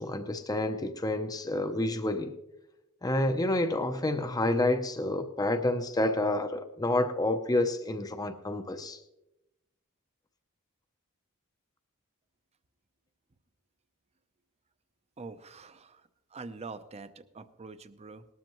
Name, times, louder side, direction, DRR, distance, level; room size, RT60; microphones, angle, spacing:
voice 1, 0.0-2.3 3.0-9.0, left 1 dB, 15° left, 7 dB, 0.6 m, -29 dB
voice 2, 15.2-16.0 16.3-18.3, right 4 dB, 30° right, 12 dB, 0.6 m, -44 dB
19.5 x 13.0 x 3.0 m, 0.94 s
head